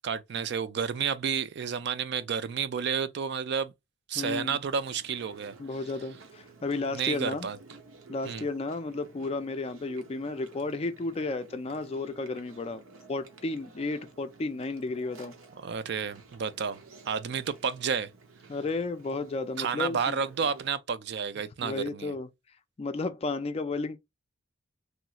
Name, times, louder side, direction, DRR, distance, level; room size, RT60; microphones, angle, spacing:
voice 1, 0.0-3.7 4.1-5.5 6.9-7.6 8.3-8.4 15.6-16.8 17.1-18.1 19.6-22.1, right 6 dB, 55° right, 0.3 m, -31 dB
voice 2, 4.1-4.6 5.6-7.5 8.1-12.8 13.1-15.4 18.5-20.2 21.6-22.3 22.8-24.0, left 3 dB, 30° left, 0.3 m, -33 dB
Chewing mastication, 4.6-20.7, right 3 dB, 80° right, 0.7 m, -53 dB
3.1 x 2.3 x 2.8 m
head